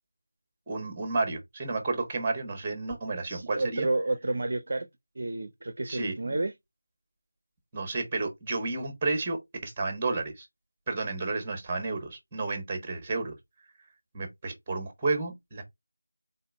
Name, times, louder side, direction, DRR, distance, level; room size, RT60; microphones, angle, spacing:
voice 1, 0.7-3.9 5.9-6.4 7.7-10.5 10.9-13.4 14.1-15.6, right 3 dB, 10° right, 1.4 m, -31 dB
voice 2, 3.3-4.9 5.2-6.5, right 2 dB, 45° right, 0.7 m, -30 dB
4.1 x 3.7 x 3.5 m
figure-of-eight pair, 170°, 0 cm